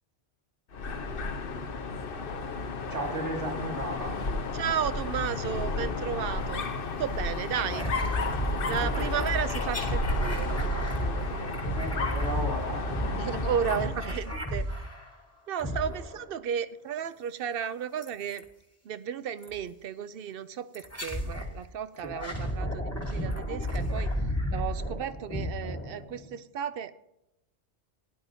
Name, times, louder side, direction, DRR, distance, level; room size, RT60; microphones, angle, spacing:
Dog, 0.7-14.0, left 3 dB, 55° left, 1.0 m, -33 dB
voice 1, 2.9-4.2 8.7-9.1 11.7-13.4 22.0-22.2, right 2 dB, 90° right, -1 dB, 2.6 m, -35 dB
voice 2, 4.5-6.7 7.0-7.9 8.7-12.1 13.2-14.7 15.5-18.4 18.9-24.1 24.5-26.9, right 8 dB, 65° right, 13 dB, 0.7 m, -34 dB
sound 1, 7.7-15.1 15.5-16.3 18.0-18.4 19.4-19.6 20.7-21.5 22.0-26.3, equal, 15° left, 1.4 m, -33 dB
16.5 x 10.5 x 2.7 m, 0.88 s
omnidirectional pair, 1.2 m